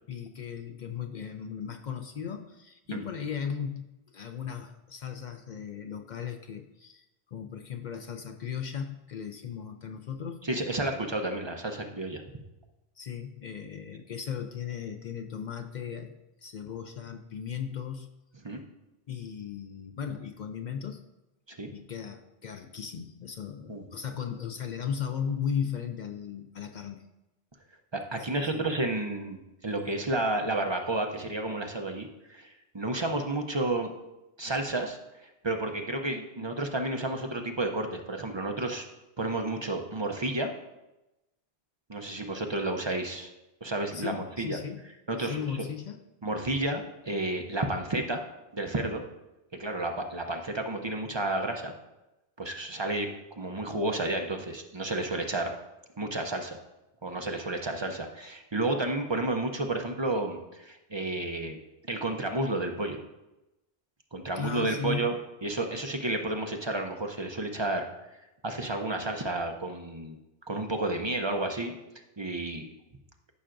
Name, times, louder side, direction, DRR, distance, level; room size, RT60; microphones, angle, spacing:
voice 1, 0.1-10.5 13.0-16.1 16.4-18.1 19.1-21.0 21.7-27.0 28.4-28.6 43.9-44.9 45.2-46.0 64.4-65.1, left 7 dB, 55° left, 6 dB, 0.6 m, -36 dB
voice 2, 10.4-12.2 18.4-18.6 21.5-21.7 23.7-23.8 27.9-29.4 29.6-33.9 34.4-38.8 39.2-40.5 41.9-43.3 43.6-44.6 45.1-45.4 46.2-48.2 48.5-49.0 49.6-51.7 52.4-55.5 56.0-56.6 57.0-61.6 61.9-63.0 64.1-65.2 65.4-67.8 68.4-70.2 70.5-71.7 72.2-72.7, right 2 dB, 30° right, 3 dB, 0.6 m, -31 dB
13.5 x 5.7 x 2.5 m, 0.97 s
omnidirectional pair, 1.1 m